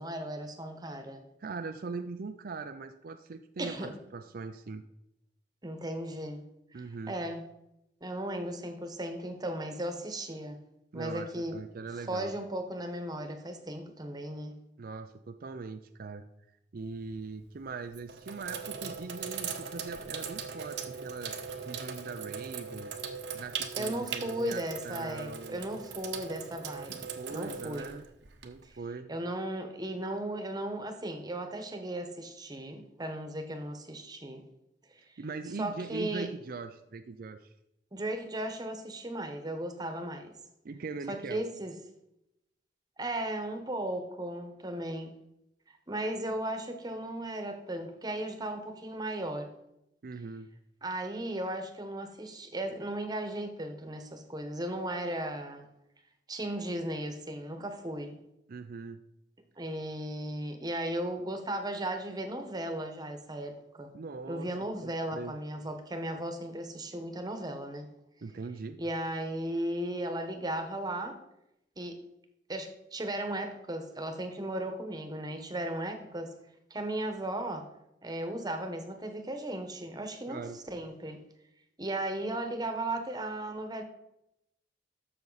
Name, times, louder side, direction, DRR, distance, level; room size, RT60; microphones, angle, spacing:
voice 1, 0.0-1.2 3.6-3.9 5.6-6.4 6.7-7.4 8.0-10.6 10.9-11.6 12.1-14.5 23.8-27.9 28.6-28.8 29.1-34.4 35.6-36.3 37.9-40.3 41.1-41.7 43.0-45.1 45.9-49.5 50.8-55.7 56.3-58.2 59.6-63.9 64.3-67.9 68.8-71.2 71.8-72.0 72.5-76.3 76.7-77.7 78.0-81.2 81.8-83.8, right 1 dB, 20° right, 6 dB, 1.2 m, -36 dB
voice 2, 1.4-4.8 6.7-7.2 10.9-12.3 14.8-16.3 16.7-21.4 21.6-22.9 23.3-25.6 27.1-28.0 28.4-29.1 35.2-37.5 40.6-41.4 50.0-50.5 58.5-59.0 63.9-64.5 64.8-65.4 68.2-68.8 80.3-80.6, right 4 dB, 55° right, 8 dB, 0.5 m, -41 dB
Sink (filling or washing), 16.8-17.2 17.8-28.8, right 6 dB, 70° right, 1.0 m, -40 dB
12.0 x 7.0 x 4.0 m, 0.85 s
head